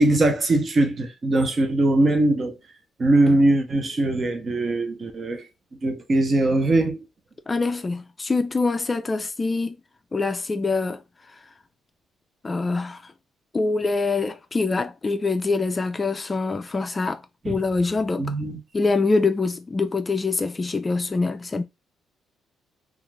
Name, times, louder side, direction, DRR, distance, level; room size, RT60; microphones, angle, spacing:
voice 1, 0.0-2.5 3.0-5.4 5.8-7.0 17.4-17.5 18.2-18.6, right 2 dB, 40° right, 0.8 m, -21 dB
voice 2, 7.5-9.8 10.1-11.0 12.4-13.1 13.5-17.2 17.5-18.3 18.7-21.6, left 3 dB, 25° left, 0.3 m, -24 dB
2.4 x 2.4 x 3.1 m
cardioid pair, 90°, 0 cm